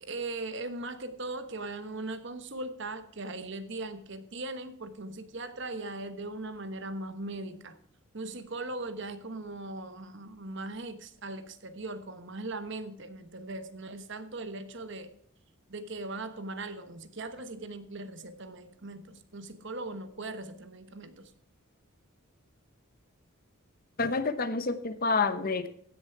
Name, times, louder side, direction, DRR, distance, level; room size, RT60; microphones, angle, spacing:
voice 1, 0.0-7.8 8.1-15.1 15.7-21.3, right 2 dB, 55° right, 10 dB, 1.2 m, -39 dB
voice 2, 24.0-25.7, left 4 dB, 40° left, 11 dB, 0.9 m, -28 dB
15.5 x 7.0 x 4.7 m, 0.64 s
head